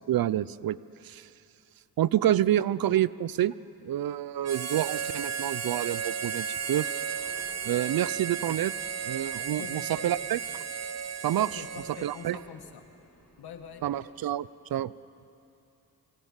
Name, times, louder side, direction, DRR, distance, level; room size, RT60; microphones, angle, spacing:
voice 1, 0.1-1.3 2.0-3.5 3.8-6.9 7.6-8.7 9.0-10.4 11.2-11.6 12.0-12.4 13.8-14.9, right 12 dB, 65° right, 19 dB, 0.6 m, -28 dB
Harmonica, 4.4-12.5, right 7 dB, 40° right, 1.0 m, -34 dB
sound 1, 4.8-14.0, equal, 5° left, 6.1 m, -56 dB
voice 2, 9.6-10.2 11.4-12.8 13.4-13.8, left 7 dB, 80° left, 7 dB, 1.8 m, -44 dB
25.0 x 18.5 x 7.4 m, 2.7 s
cardioid pair, 75°, 38 cm